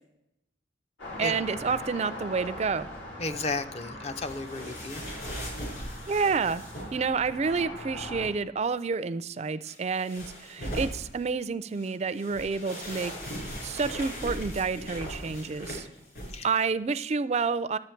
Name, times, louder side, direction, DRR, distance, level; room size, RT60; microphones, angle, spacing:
sound 1, 1.0-8.3, left 1 dB, 85° left, 4.1 m, -41 dB
voice 1, 1.2-2.9 6.1-6.6 6.9-13.1 13.6-15.9 16.4-17.8, right 5 dB, 35° right, 15 dB, 0.3 m, -29 dB
voice 2, 3.2-5.0 16.3-16.5, left 3 dB, 35° left, 10 dB, 0.5 m, -33 dB
sound 2, 4.2-7.1 9.6-11.2 11.7-16.4, equal, 50° left, 4.4 m, -39 dB
11.5 x 7.6 x 4.4 m, 0.82 s
head